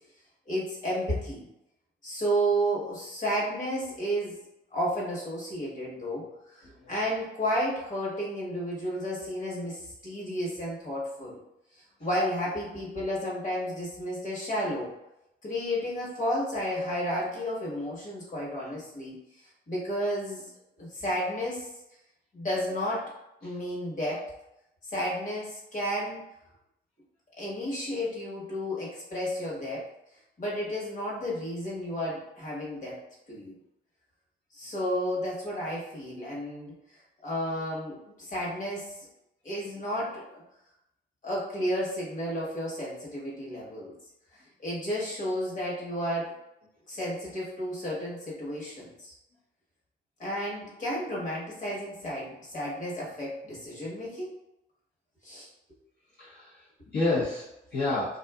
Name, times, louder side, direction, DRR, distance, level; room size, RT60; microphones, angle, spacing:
voice 1, 0.5-1.4 2.0-4.4 4.7-11.4 11.7-14.9 15.4-20.5 20.8-21.7 22.3-23.1 23.4-24.3 24.8-26.2 27.4-29.9 30.4-33.0 33.3-33.5 34.5-36.7 37.2-39.0 39.4-40.4 41.2-43.9 44.3-46.3 46.9-49.1 50.2-54.3 55.2-55.5, equal, 40° left, -5 dB, 1.2 m, -32 dB
voice 2, 56.2-58.2, left 2 dB, 60° left, -10 dB, 0.9 m, -30 dB
2.6 x 2.4 x 2.3 m, 0.85 s
cardioid pair, 90°, 20 cm